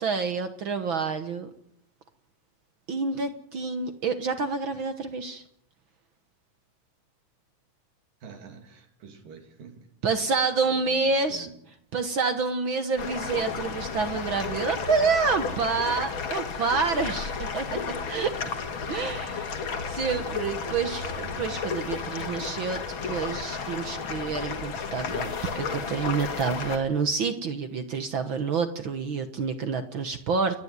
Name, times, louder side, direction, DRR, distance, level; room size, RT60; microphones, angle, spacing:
voice 1, 0.0-1.5 2.9-5.4 10.0-11.5 11.9-18.3 18.9-19.5 19.9-25.3 25.5-30.6, right 4 dB, 60° right, 1.3 m, -28 dB
voice 2, 8.2-10.4 10.6-11.6, right 5 dB, 90° right, 4.3 m, -47 dB
sound 1, 13.0-26.8, left 5 dB, 45° left, 2.1 m, -33 dB
29.5 x 10.5 x 9.5 m
omnidirectional pair, 3.8 m